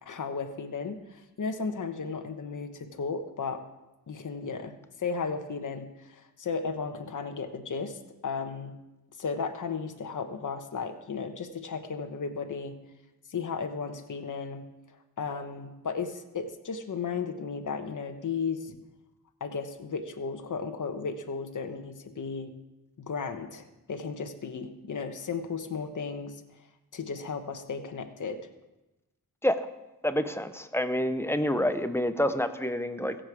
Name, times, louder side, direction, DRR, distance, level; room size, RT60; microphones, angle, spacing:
voice 1, 0.0-3.6 4.1-4.7 5.0-8.7 9.2-12.7 13.3-14.6 15.2-18.8 19.4-22.5 23.0-26.4 26.9-28.4, left 5 dB, 55° left, 6 dB, 1.2 m, -34 dB
voice 2, 30.0-33.2, left 1 dB, 5° left, 9 dB, 0.6 m, -27 dB
22.5 x 7.8 x 4.8 m, 1.0 s
wide cardioid pair, 170°, 37 cm